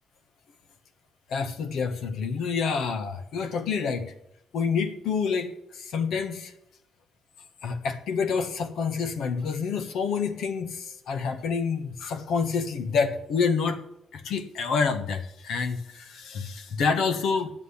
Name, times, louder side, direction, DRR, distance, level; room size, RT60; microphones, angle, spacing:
voice 1, 1.3-4.1 4.5-6.5 7.6-13.8 14.1-17.5, left 5 dB, 75° left, 8 dB, 1.3 m, -28 dB
9.8 x 7.5 x 8.5 m, 0.82 s
cardioid pair, 90°, 0 cm